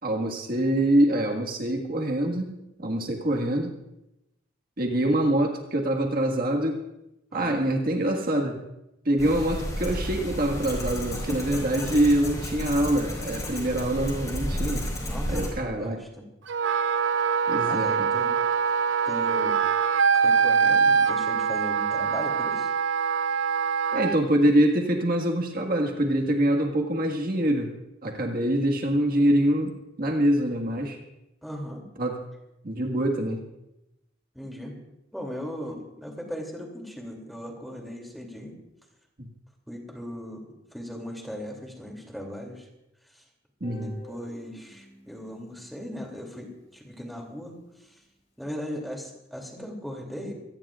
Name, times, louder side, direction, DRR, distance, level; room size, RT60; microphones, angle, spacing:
voice 1, 0.0-3.8 4.8-6.8 7.3-8.6 9.1-14.9 15.3-16.0 17.5-18.1 23.9-27.7 28.0-29.7 30.0-31.0 32.0-32.2 32.6-33.4 39.2-39.3 43.6-43.9, right 1 dB, 50° right, 1 dB, 1.8 m, -25 dB
voice 2, 7.3-7.6 14.9-16.3 17.6-18.3 19.0-19.6 20.1-22.7 31.4-31.9 34.3-34.8 35.1-38.5 39.7-42.7 43.7-47.9 48.4-50.3, equal, ahead, 1 dB, 2.8 m, -38 dB
sound 1, 9.2-15.5, equal, 20° left, 4.8 m, -32 dB
Wind instrument woodwind instrument, 16.5-24.2, right 6 dB, 75° right, 0.5 m, -23 dB
Guitar, 43.6-46.6, right 1 dB, 35° left, 6.7 m, -49 dB
26.0 x 18.5 x 2.5 m, 0.90 s
head